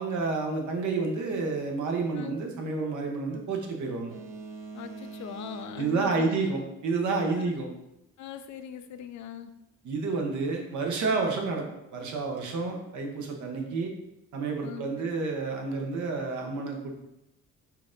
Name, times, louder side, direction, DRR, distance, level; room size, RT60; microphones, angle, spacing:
voice 1, 0.0-4.1 5.7-7.7 9.8-11.6 11.9-13.9 14.3-16.9, right 4 dB, 75° right, 2 dB, 0.9 m, -30 dB
Boat Water vehicle, 4.1-7.2, right 3 dB, 45° right, 1.0 m, -44 dB
voice 2, 4.7-6.5 7.3-7.5 8.2-9.5 14.6-15.1, left 8 dB, 70° left, 9 dB, 0.5 m, -41 dB
4.5 x 2.5 x 3.6 m, 0.88 s
cardioid pair, 90°, 30 cm